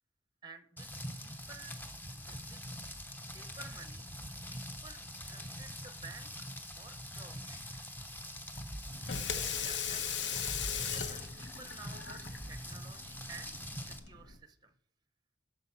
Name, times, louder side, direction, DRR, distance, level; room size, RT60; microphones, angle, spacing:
voice 1, 0.4-0.9 1.2-1.8 2.1-2.6 3.3-4.1 4.5-5.0 5.3-7.9 9.6-14.7, right 4 dB, 20° right, 9 dB, 0.6 m, -53 dB
Rain, 0.8-14.0, equal, 10° left, 0.7 m, -44 dB
Water tap faucet / Sink (filling or washing), 8.9-14.4, left 7 dB, 75° left, 0.8 m, -39 dB
8.4 x 6.5 x 5.7 m, 0.69 s
head